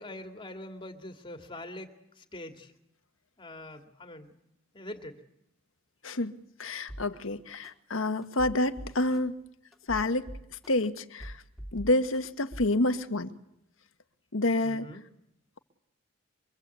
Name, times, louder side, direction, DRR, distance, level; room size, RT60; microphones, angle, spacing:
voice 1, 0.0-2.7 3.4-4.3 4.7-5.2 14.6-15.0, left 1 dB, 25° left, 6 dB, 2.3 m, -43 dB
voice 2, 6.0-6.3 6.6-9.4 9.9-10.3 10.7-11.4 11.7-13.3 14.3-14.9, left 2 dB, 80° left, 9 dB, 1.5 m, -28 dB
sound 1, 6.9-7.1 7.6-7.7 8.2-9.2 9.7-10.9 11.2-12.2 12.5-12.7, equal, ahead, 3.0 m, -42 dB
25.0 x 24.5 x 8.3 m, 0.78 s
head